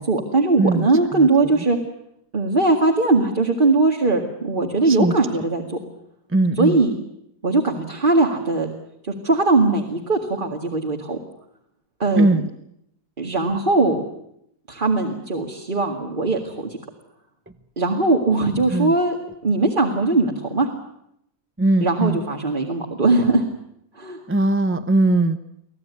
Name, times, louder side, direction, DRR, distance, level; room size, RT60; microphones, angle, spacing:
voice 1, 0.0-1.8 2.3-5.6 6.6-6.9 7.4-8.7 9.1-11.2 12.0-12.3 13.2-14.0 14.7-16.8 17.8-19.2 19.4-20.7 21.8-23.4 24.0-24.2, right 3 dB, 30° right, 2 dB, 2.2 m, -20 dB
voice 2, 0.6-1.6 4.9-5.1 6.3-6.8 12.2-12.5 18.7-18.9 21.6-22.2 24.3-25.4, right 2 dB, 15° right, 9 dB, 0.5 m, -20 dB
25.5 x 16.5 x 9.6 m, 0.77 s
omnidirectional pair, 1.8 m